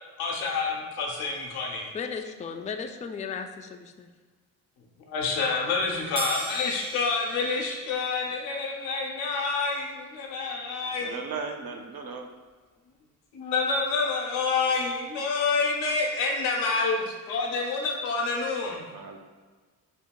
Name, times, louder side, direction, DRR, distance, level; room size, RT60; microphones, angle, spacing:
voice 1, 0.2-1.9 5.1-11.2 13.3-18.9, left 4 dB, 80° left, -1 dB, 0.9 m, -28 dB
voice 2, 1.9-4.1, left 6 dB, 20° left, 5 dB, 0.3 m, -35 dB
sound 1, 6.2-9.2, right 4 dB, 10° right, 0.6 m, -39 dB
voice 3, 11.0-12.3 18.9-19.2, right 5 dB, 55° right, 5 dB, 0.7 m, -37 dB
5.4 x 2.8 x 2.3 m, 1.4 s
hypercardioid pair, 50°, 43 cm